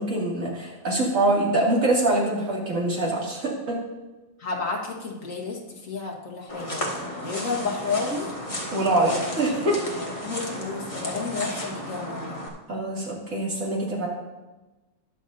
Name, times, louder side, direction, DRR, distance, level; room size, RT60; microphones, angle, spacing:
voice 1, 0.0-3.8 8.7-9.9 12.7-14.1, right 2 dB, 70° right, -4 dB, 2.9 m, -24 dB
voice 2, 4.4-8.3 8.9-9.2 9.7-12.5, left 4 dB, 70° left, -1 dB, 2.0 m, -32 dB
sound 1, 6.5-12.5, equal, 25° left, 1.6 m, -34 dB
20.0 x 6.8 x 2.7 m, 1.1 s
omnidirectional pair, 1.4 m